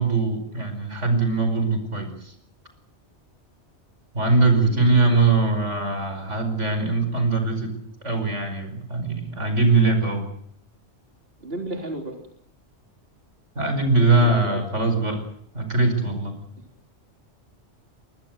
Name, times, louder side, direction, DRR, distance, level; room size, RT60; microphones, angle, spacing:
voice 1, 0.0-2.3 4.1-7.7 8.0-10.3 13.6-15.2 15.5-16.4, right 3 dB, 85° right, 7 dB, 5.5 m, -21 dB
voice 2, 4.5-5.2 11.4-12.2 14.1-14.6, right 2 dB, 55° right, 3 dB, 3.9 m, -34 dB
24.0 x 21.0 x 8.0 m, 0.66 s
omnidirectional pair, 1.2 m